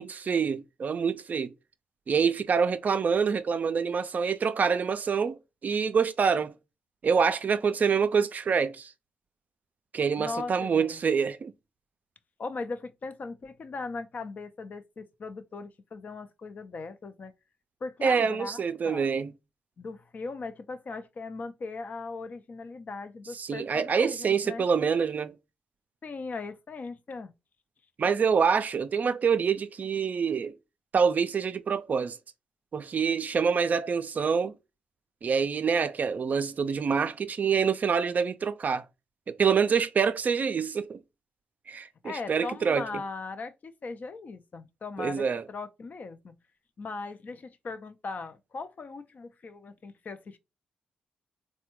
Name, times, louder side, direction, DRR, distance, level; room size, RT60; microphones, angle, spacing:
voice 1, 0.0-1.5 2.1-6.5 7.0-8.9 9.9-11.5 18.0-19.3 23.4-25.3 28.0-30.5 30.9-32.2 32.7-34.5 35.2-38.8 39.3-41.0 41.7-42.9 45.0-45.4, right 6 dB, 50° right, 0.3 m, -26 dB
voice 2, 10.2-11.0 12.4-17.3 17.8-19.1 19.8-24.7 26.0-27.3 42.0-46.3 46.8-50.4, left 3 dB, 55° left, 0.4 m, -39 dB
3.4 x 2.2 x 2.9 m
supercardioid pair, 50°, 3 cm